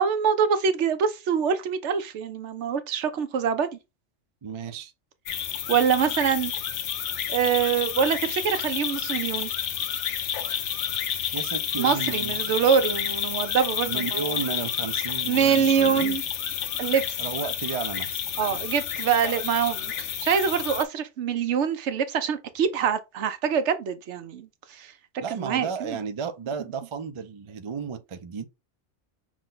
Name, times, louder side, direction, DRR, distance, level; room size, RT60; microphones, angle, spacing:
voice 1, 0.0-3.8 5.7-6.5 7.3-9.5 11.8-14.2 15.3-16.2 16.8-17.2 18.4-24.9 25.4-26.0, right 7 dB, 75° right, 0.9 m, -24 dB
voice 2, 4.4-4.9 11.3-12.4 13.9-16.2 17.2-18.2 25.2-28.5, right 6 dB, 45° right, 0.4 m, -33 dB
sound 1, 5.3-20.8, left 9 dB, 75° left, 1.0 m, -30 dB
6.0 x 2.2 x 3.8 m
omnidirectional pair, 1.2 m